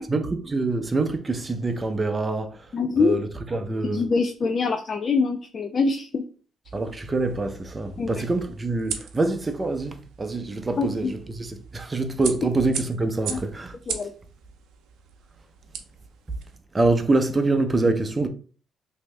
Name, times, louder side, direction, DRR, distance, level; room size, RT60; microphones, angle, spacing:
voice 1, 0.1-4.1 6.7-13.8 16.7-18.3, right 3 dB, 25° right, 0.6 m, -25 dB
voice 2, 2.7-3.2 3.9-6.2 8.0-8.2 10.8-11.1 13.3-13.4 13.9-14.1, left 4 dB, 45° left, 0.4 m, -24 dB
sound 1, 6.6-16.6, right 7 dB, 85° right, 0.5 m, -39 dB
3.1 x 2.7 x 3.3 m
cardioid pair, 90°, 0 cm